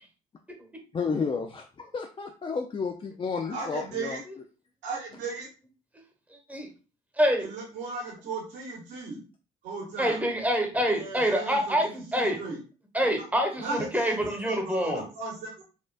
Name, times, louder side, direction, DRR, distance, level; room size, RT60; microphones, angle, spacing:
voice 1, 0.9-4.2, left 5 dB, 30° left, 4 dB, 0.4 m, -31 dB
voice 2, 3.5-4.2 4.8-5.5 7.4-9.2 9.6-10.2 10.9-12.6 13.6-14.2 14.5-15.6, right 4 dB, 75° right, -2 dB, 1.7 m, -36 dB
voice 3, 6.3-6.7 7.2-7.5 10.0-12.4 12.9-15.1, equal, 10° right, 3 dB, 1.1 m, -26 dB
4.2 x 2.5 x 2.3 m, 0.35 s
supercardioid pair, 70°, 18 cm